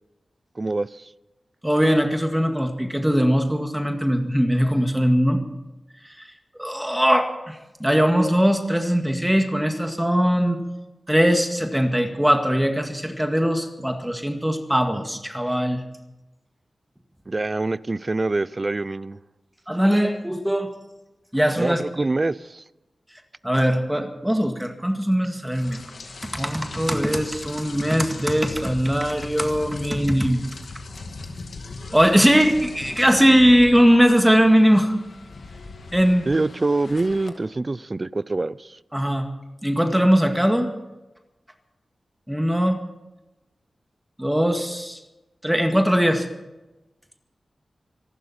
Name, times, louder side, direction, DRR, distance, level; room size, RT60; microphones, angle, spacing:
voice 1, 0.6-1.1 17.3-19.2 21.6-22.6 36.3-38.8, right 2 dB, 35° right, 18 dB, 0.5 m, -25 dB
voice 2, 1.6-5.4 6.2-6.3 6.6-10.6 11.1-15.8 19.7-20.7 21.3-22.1 23.4-25.8 26.2-30.5 31.9-35.0 35.9-36.3 38.9-39.3 39.6-40.7 42.3-42.8 44.2-45.0 45.4-46.3, equal, 5° right, 4 dB, 1.9 m, -20 dB
Rain, 25.5-37.3, left 3 dB, 75° left, 2.1 m, -39 dB
26.0 x 12.0 x 4.4 m, 1.0 s
wide cardioid pair, 85°, 0 cm